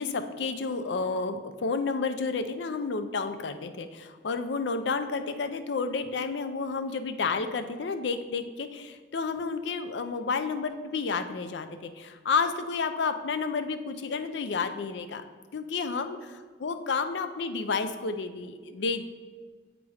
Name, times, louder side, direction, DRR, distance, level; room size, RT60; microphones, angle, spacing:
voice 1, 0.0-15.2 15.5-16.2 16.6-19.0, left 4 dB, 70° left, 9 dB, 0.5 m, -31 dB
8.2 x 3.0 x 4.8 m, 1.5 s
head